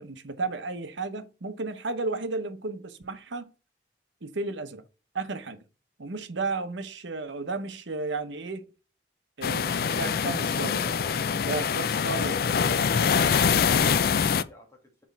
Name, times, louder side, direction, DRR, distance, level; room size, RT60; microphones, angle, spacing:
voice 1, 0.0-3.5 4.2-4.8 5.1-5.6 6.0-8.6 9.4-11.1 11.4-13.1, right 3 dB, 80° right, 0.8 m, -33 dB
sound 1, 9.4-14.4, left 6 dB, 50° left, 0.3 m, -24 dB
voice 2, 12.6-15.0, equal, 15° left, 1.7 m, -48 dB
6.2 x 4.2 x 4.0 m
head